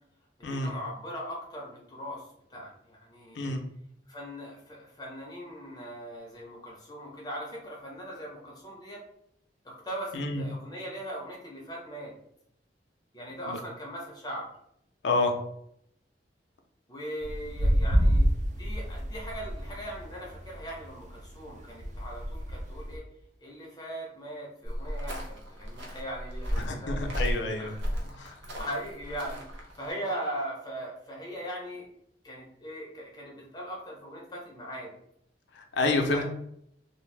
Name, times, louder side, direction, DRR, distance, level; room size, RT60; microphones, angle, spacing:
voice 1, 0.5-3.6 4.1-9.0 9.6-12.1 13.1-14.5 16.9-23.0 23.4-27.3 27.6-31.9 32.2-34.9 36.1-36.2, equal, 25° left, -2 dB, 0.6 m, -40 dB
voice 2, 15.0-15.3 26.6-27.7 28.2-28.3 35.6-36.2, left 2 dB, 80° left, 4 dB, 0.5 m, -28 dB
sound 1, 17.2-23.0, equal, 40° right, 0.3 m, -28 dB
sound 2, 24.6-29.9, equal, 90° right, 0.7 m, -34 dB
2.6 x 2.1 x 3.2 m, 0.72 s
head